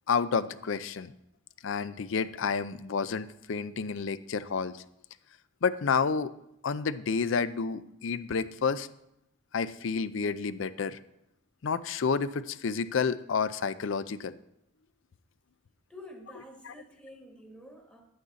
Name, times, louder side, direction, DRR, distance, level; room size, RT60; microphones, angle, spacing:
voice 1, 0.1-1.1 1.6-4.8 5.6-6.3 6.6-8.9 9.5-11.0 11.6-14.4 16.6-16.7, left 5 dB, 60° left, 15 dB, 0.4 m, -30 dB
voice 2, 15.9-18.0, left 1 dB, 5° left, 1 dB, 1.3 m, -49 dB
11.5 x 8.8 x 4.0 m, 0.82 s
head